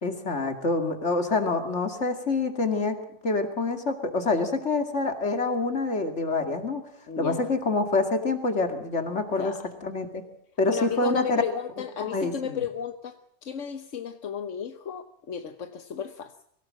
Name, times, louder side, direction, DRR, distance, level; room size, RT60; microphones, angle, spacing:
voice 1, 0.0-3.0 3.2-6.8 7.2-9.5 9.8-10.2 10.6-11.4 12.0-12.6, left 3 dB, 70° left, 6 dB, 2.7 m, -26 dB
voice 2, 7.1-7.5 9.4-9.6 10.7-13.2 13.4-16.4, left 8 dB, 90° left, 8 dB, 1.4 m, -34 dB
24.0 x 17.5 x 7.6 m, 0.68 s
omnidirectional pair, 1.2 m